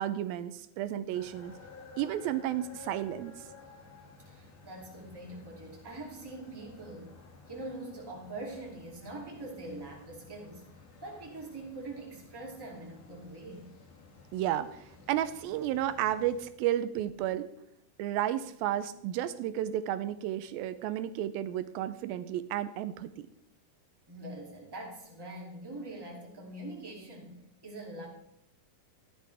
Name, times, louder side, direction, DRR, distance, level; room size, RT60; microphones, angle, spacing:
voice 1, 0.0-1.5 2.0-3.3 14.3-17.5 18.0-23.1, right 12 dB, 85° right, 12 dB, 2.4 m, -32 dB
sound 1, 1.1-16.5, left 4 dB, 85° left, 4.1 m, -54 dB
voice 2, 4.2-7.1 7.5-10.7 11.0-13.7 24.1-27.4 27.6-28.1, right 2 dB, 10° right, -3 dB, 2.1 m, -43 dB
14.0 x 11.0 x 3.4 m, 0.76 s
omnidirectional pair, 4.2 m